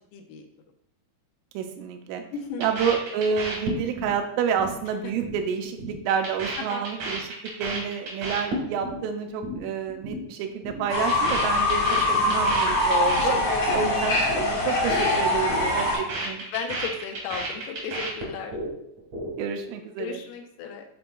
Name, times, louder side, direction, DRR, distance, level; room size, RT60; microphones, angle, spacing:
voice 1, 0.1-0.5 2.3-2.6 6.6-6.8 13.2-13.9 16.5-18.6 20.0-20.8, left 6 dB, 90° left, 3 dB, 3.3 m, -35 dB
voice 2, 1.5-2.2 2.6-13.4 13.7-16.4 19.4-20.2, right 7 dB, 85° right, 5 dB, 3.2 m, -29 dB
sound 1, 2.6-4.2 4.4-4.8 5.0-5.4 5.6-9.0 9.3-9.6 9.9-10.2 10.5-13.9 14.1-14.5 14.7-15.1 15.3-18.7 19.0-19.6, right 2 dB, 70° right, 1.8 m, -33 dB
Fowl / Bird, 10.9-15.9, left 2 dB, 75° left, 1.3 m, -23 dB
10.5 x 3.9 x 2.3 m, 0.72 s
omnidirectional pair, 5.7 m